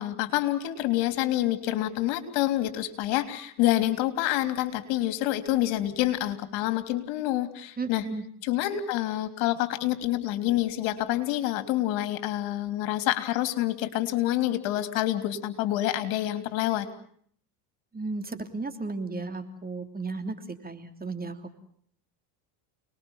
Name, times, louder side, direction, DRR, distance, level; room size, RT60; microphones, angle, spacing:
voice 1, 0.0-8.1 8.4-16.9, left 14 dB, 75° left, 10 dB, 3.4 m, -27 dB
voice 2, 7.8-8.2 17.9-21.5, right 3 dB, 20° right, 8 dB, 3.1 m, -34 dB
29.5 x 20.5 x 7.3 m, 0.62 s
supercardioid pair, 100°, 48 cm